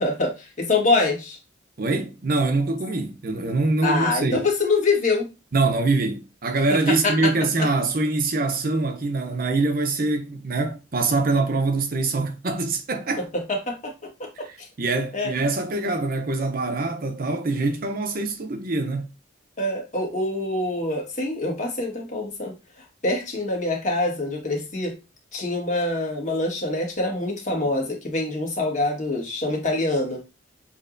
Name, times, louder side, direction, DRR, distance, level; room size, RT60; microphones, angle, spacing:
voice 1, 0.0-1.4 3.8-5.3 7.0-7.3 7.6-7.7 13.5-13.9 14.4-14.5 15.1-15.3 19.6-22.5 23.0-24.9 25.3-30.2, left 2 dB, 40° left, 1.5 m, -25 dB
voice 2, 1.8-4.5 5.5-13.3 14.4-19.1, right 3 dB, 50° right, 0.6 m, -24 dB
6.5 x 2.9 x 2.5 m
head